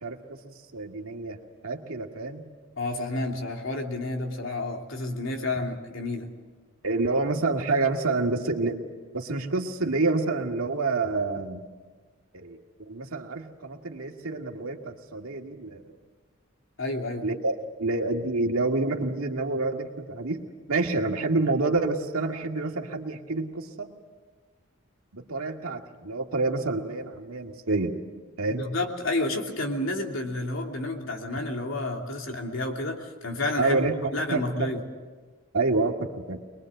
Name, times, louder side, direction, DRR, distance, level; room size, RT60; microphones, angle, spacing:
voice 1, 0.4-2.4 6.8-8.8 9.1-11.7 12.3-12.6 12.9-15.9 17.2-17.5 17.8-20.4 20.7-23.9 25.1-28.0 28.4-28.6 33.6-34.7 35.5-36.4, right 3 dB, 90° right, 2 dB, 2.2 m, -28 dB
voice 2, 2.8-6.3 16.8-17.3 28.6-33.8 34.1-34.8, left 2 dB, 70° left, 1 dB, 3.0 m, -30 dB
23.5 x 22.0 x 8.0 m, 1.4 s
head